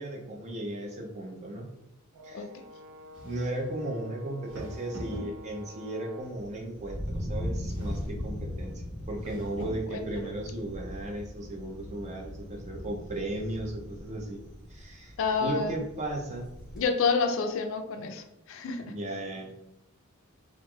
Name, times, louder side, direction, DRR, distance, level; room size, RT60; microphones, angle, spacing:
voice 1, 0.0-1.7 2.2-2.5 3.2-14.4 14.7-15.1 15.4-16.5 18.8-19.5, right 1 dB, 30° right, 0 dB, 0.5 m, -36 dB
Brass instrument, 2.1-6.5, equal, 90° right, 0.4 m, -50 dB
voice 2, 2.3-2.6 9.9-10.3 15.2-15.8 16.7-18.8, left 5 dB, 60° left, 6 dB, 0.3 m, -29 dB
sound 1, 3.1-3.8 4.5-5.8 7.7-8.4 9.1-10.0, equal, 60° right, 1.0 m, -43 dB
Thunder, 6.2-16.8, left 1 dB, ahead, 1.3 m, -39 dB
3.1 x 2.4 x 2.3 m, 0.89 s
head